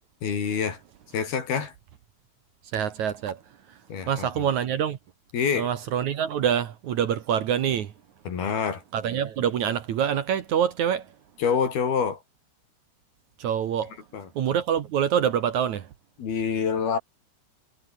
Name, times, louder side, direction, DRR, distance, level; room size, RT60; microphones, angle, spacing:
voice 1, 0.2-0.8 1.1-1.7 3.9-4.4 5.3-5.7 8.3-8.8 11.4-12.2 14.1-14.3 16.2-17.0, left 6 dB, 60° left, 6.0 m, -26 dB
voice 2, 2.7-3.4 4.1-5.0 5.6-7.9 8.9-11.1 13.4-14.0 14.4-15.9, right 9 dB, 60° right, 2.1 m, -25 dB
omnidirectional pair, 5.0 m